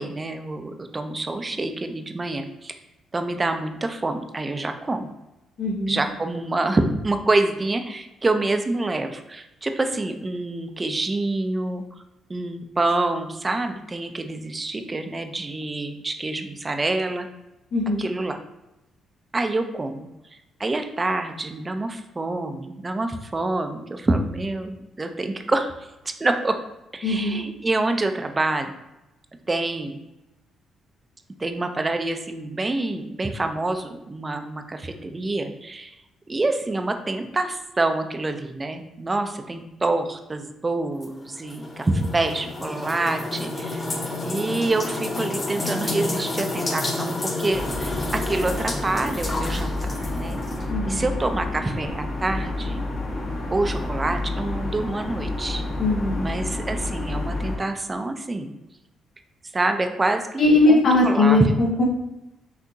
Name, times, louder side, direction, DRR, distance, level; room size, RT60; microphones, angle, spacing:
voice 1, 0.0-2.7 3.1-5.1 5.9-12.0 12.3-17.3 18.0-18.4 19.3-20.1 20.6-26.5 26.9-28.7 29.5-30.0 31.4-35.9 36.3-43.8 44.2-47.9 48.3-50.4 50.9-52.8 53.5-55.6 56.2-58.5 59.5-61.6, right 2 dB, 25° right, 7 dB, 0.5 m, -26 dB
voice 2, 5.6-6.0 17.7-18.1 27.0-27.4 50.7-51.0 55.8-56.3 60.4-61.8, left 2 dB, 65° left, -3 dB, 0.8 m, -20 dB
sound 1, 41.0-50.6, left 2 dB, 30° left, 0.7 m, -30 dB
sound 2, 47.5-57.6, left 2 dB, 50° left, 1.2 m, -29 dB
5.9 x 2.7 x 2.7 m, 0.93 s
cardioid pair, 90°, 0 cm